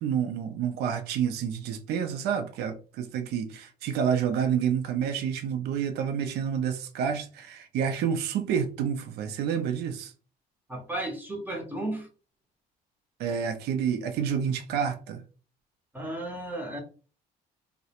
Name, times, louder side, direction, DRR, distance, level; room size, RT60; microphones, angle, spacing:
voice 1, 0.0-10.1 13.2-15.2, right 7 dB, 75° right, 0.4 m, -29 dB
voice 2, 10.7-12.1 15.9-16.8, right 1 dB, 10° right, 0.6 m, -34 dB
2.3 x 2.1 x 2.8 m
cardioid pair, 110°, 17 cm